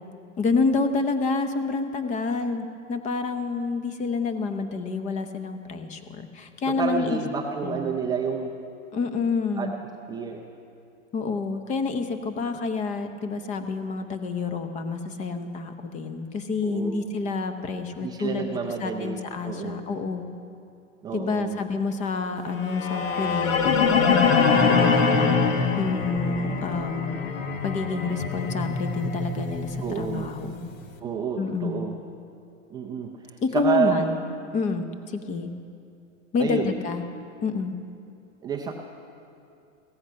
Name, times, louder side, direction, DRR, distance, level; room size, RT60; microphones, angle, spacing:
voice 1, 0.4-7.2 7.6-7.9 8.9-9.7 11.1-18.5 18.8-20.3 21.1-25.4 25.8-27.2 27.6-30.7 31.4-31.9 33.4-34.1 34.5-35.5 36.3-37.0 37.4-37.7, left 4 dB, 20° left, 9 dB, 0.8 m, -28 dB
voice 2, 6.7-8.5 9.6-9.7 10.1-10.4 16.6-17.1 18.0-19.8 21.0-21.6 29.8-30.3 31.0-31.9 32.7-34.1 36.4-36.7 38.4-38.7, right 6 dB, 10° right, 1 dB, 0.4 m, -29 dB
sound 1, 22.6-30.7, left 5 dB, 85° left, 1.5 m, -24 dB
16.0 x 14.5 x 5.7 m, 2.6 s
hypercardioid pair, 145°, 39 cm